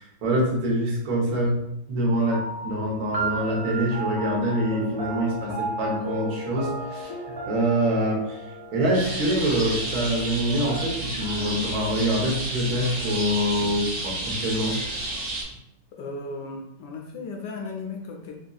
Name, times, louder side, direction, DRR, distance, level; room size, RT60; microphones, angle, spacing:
voice 1, 0.0-1.6 1.9-8.4 8.7-14.8, right 1 dB, 90° right, -2 dB, 1.8 m, -25 dB
sound 1, 2.3-11.1, right 2 dB, 45° right, 1.0 m, -35 dB
sound 2, 8.9-15.4, right 2 dB, 70° right, 1.7 m, -31 dB
voice 2, 15.9-18.3, left 3 dB, 75° left, 1 dB, 1.1 m, -35 dB
5.2 x 2.5 x 2.3 m, 0.76 s
omnidirectional pair, 2.1 m